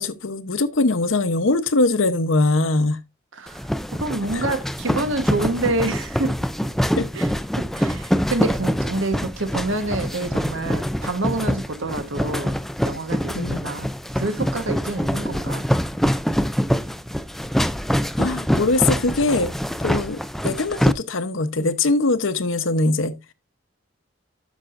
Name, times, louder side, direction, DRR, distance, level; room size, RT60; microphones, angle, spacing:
voice 1, 0.0-3.0 4.3-4.4 7.0-7.1 13.3-13.7 18.2-19.5 19.8-23.2, left 2 dB, 85° left, 0.9 m, -22 dB
voice 2, 3.3-6.5 7.1-7.3 7.6-15.7, right 2 dB, 80° right, 1.3 m, -27 dB
sound 1, 3.5-20.9, equal, ahead, 0.4 m, -24 dB
12.5 x 6.2 x 2.5 m
head